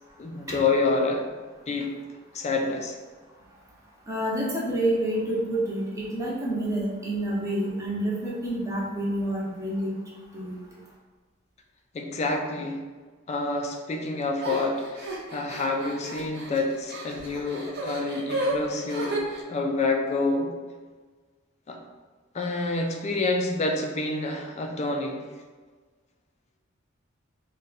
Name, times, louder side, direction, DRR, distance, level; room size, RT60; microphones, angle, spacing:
voice 1, 0.2-1.3 1.7-1.9 2.3-3.0 11.9-12.8 13.3-19.2 19.5-20.5 21.7-21.8 22.3-25.2, left 3 dB, 35° left, 3 dB, 0.4 m, -28 dB
voice 2, 4.1-9.9 10.3-10.6, right 1 dB, 15° right, -6 dB, 0.7 m, -28 dB
sound 1, 14.4-19.4, right 2 dB, 55° right, 0.6 m, -33 dB
2.6 x 2.2 x 3.9 m, 1.4 s
head